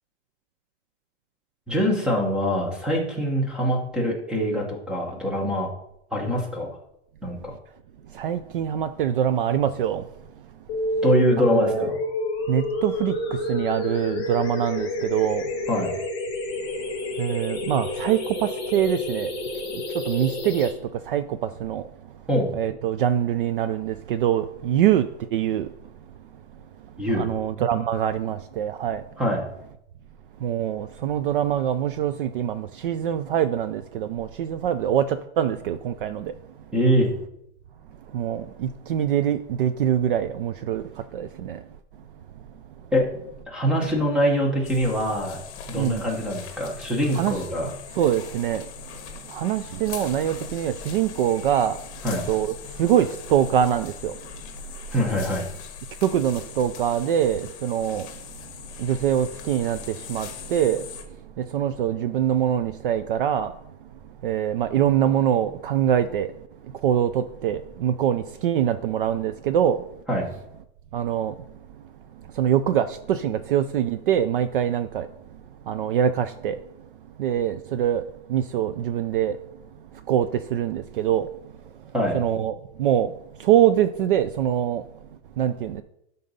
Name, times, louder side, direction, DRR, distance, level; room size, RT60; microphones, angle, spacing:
voice 1, 1.7-5.7 6.1-6.8 7.2-7.5 11.0-12.0 15.7-15.9 22.3-22.5 27.0-27.3 29.2-29.4 36.7-37.1 42.9-43.1 43.5-45.4 45.7-47.7 52.0-52.2 54.9-55.5 70.1-70.3 81.9-82.2, equal, ahead, 0.9 m, -23 dB
voice 2, 8.1-10.1 10.9-11.0 11.4-11.9 12.5-15.5 17.2-19.3 19.7-21.9 22.5-25.7 27.2-29.0 30.4-36.3 38.1-41.6 45.7-46.1 47.1-47.4 47.9-48.7 49.3-51.8 52.3-54.2 56.0-58.1 58.8-60.9 61.4-63.5 64.2-66.3 66.8-69.8 70.9-71.4 72.3-75.1 75.7-76.6 77.2-79.4 79.9-81.5 82.1-83.1 83.4-84.8 85.4-85.8, right 10 dB, 50° right, 0.4 m, -24 dB
sound 1, 10.7-20.7, left 1 dB, 15° left, 2.4 m, -29 dB
sound 2, 44.6-61.0, left 6 dB, 30° left, 1.4 m, -40 dB
11.5 x 4.0 x 5.4 m
supercardioid pair, 175°, 35 cm